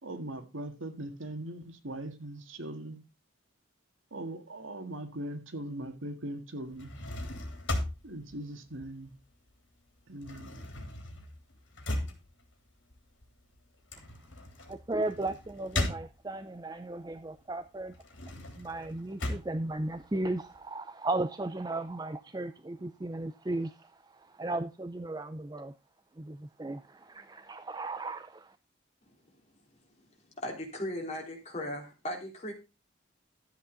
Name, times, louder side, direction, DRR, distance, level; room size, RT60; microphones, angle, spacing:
voice 1, 0.0-3.0 4.1-6.9 8.0-9.1 10.1-10.6, right 1 dB, 90° right, 1.9 m, -40 dB
sound 1, 6.6-9.5 9.8-16.6 17.1-20.6, left 1 dB, 70° left, 3.3 m, -38 dB
voice 2, 14.7-18.0 18.6-25.7 26.2-28.6, right 2 dB, 20° right, 0.5 m, -36 dB
voice 3, 30.4-32.5, left 1 dB, 35° left, 3.5 m, -37 dB
12.5 x 8.1 x 3.9 m
head